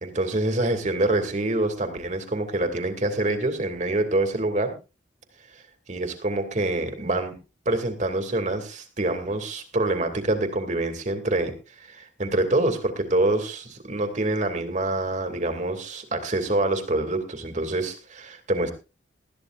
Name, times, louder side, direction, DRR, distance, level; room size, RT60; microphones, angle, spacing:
voice 1, 0.0-4.7 5.9-7.3 7.7-18.7, right 2 dB, 40° right, 6 dB, 2.5 m, -26 dB
20.5 x 13.5 x 2.5 m, 0.30 s
head